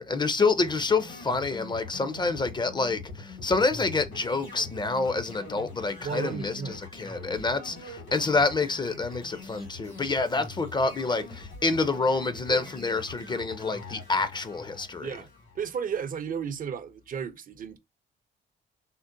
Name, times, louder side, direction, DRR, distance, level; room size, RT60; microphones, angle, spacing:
voice 1, 0.0-15.2, left 3 dB, 25° left, 0.4 m, -27 dB
sound 1, 0.6-16.0, left 3 dB, 85° left, 2.2 m, -44 dB
voice 2, 6.0-6.8 12.5-12.7 15.0-15.3 15.6-17.8, right 7 dB, 45° right, 0.4 m, -33 dB
3.7 x 2.1 x 2.5 m
cardioid pair, 90°, 20 cm